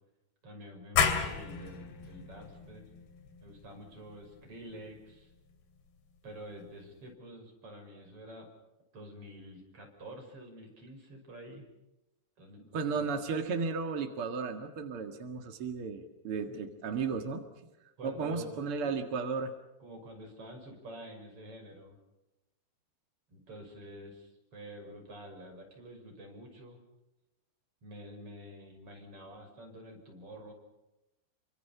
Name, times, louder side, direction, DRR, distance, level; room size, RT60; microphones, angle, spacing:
voice 1, 0.4-2.8 3.4-5.3 6.2-8.5 8.9-11.6 12.4-13.1 16.5-16.6 18.0-18.9 19.8-21.9 23.3-26.8 27.8-30.5, right 1 dB, 30° right, 3 dB, 6.8 m, -48 dB
sound 1, 1.0-6.3, left 7 dB, 65° left, 4.3 m, -34 dB
voice 2, 12.7-17.4 18.0-19.5, right 5 dB, 55° right, 5 dB, 1.6 m, -34 dB
29.0 x 25.0 x 5.7 m, 0.96 s
omnidirectional pair, 5.3 m